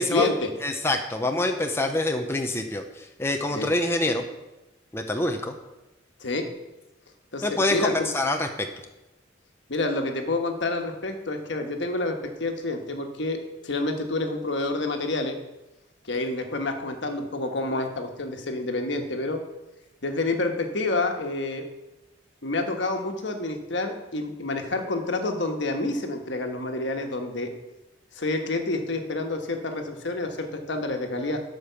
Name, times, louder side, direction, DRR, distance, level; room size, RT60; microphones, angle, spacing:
voice 1, 0.0-0.5 3.5-3.7 6.2-6.5 7.3-7.9 9.7-13.4 13.6-15.4 16.0-19.4 20.0-21.6 22.4-27.5 28.1-31.4, left 2 dB, 70° left, 4 dB, 1.4 m, -28 dB
voice 2, 0.6-4.2 4.9-5.6 7.4-8.7, left 2 dB, 15° left, 4 dB, 0.7 m, -26 dB
12.5 x 5.2 x 6.9 m, 1.0 s
head